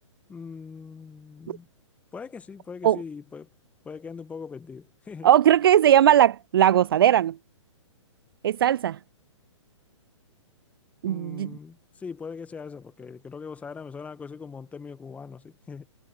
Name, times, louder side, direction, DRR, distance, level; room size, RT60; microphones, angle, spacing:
voice 1, 0.3-1.7 2.1-3.5 3.8-5.3 11.0-15.9, left 5 dB, 10° left, 1.5 m, -40 dB
voice 2, 5.2-7.3 8.4-9.0 11.0-11.5, right 11 dB, 45° right, 0.6 m, -19 dB
figure-of-eight pair, 120°, 16 cm